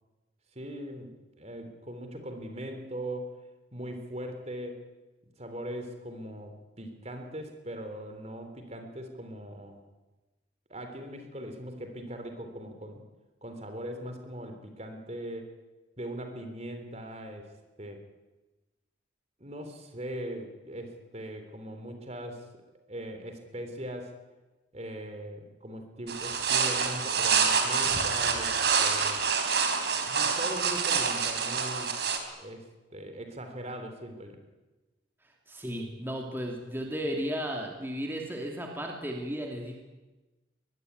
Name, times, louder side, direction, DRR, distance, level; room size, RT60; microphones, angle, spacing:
voice 1, 0.5-3.3 3.7-4.8 5.4-9.8 10.7-13.1 13.4-15.5 16.0-17.5 17.8-18.0 19.4-22.5 22.9-24.1 24.7-29.2 29.9-32.0 32.4-34.4, equal, 35° right, 6 dB, 3.4 m, -40 dB
sound 1, 26.1-32.2, right 5 dB, 60° right, 3.8 m, -27 dB
voice 2, 35.5-39.8, equal, 10° right, 1 dB, 2.9 m, -34 dB
23.5 x 21.5 x 9.5 m, 1.1 s
head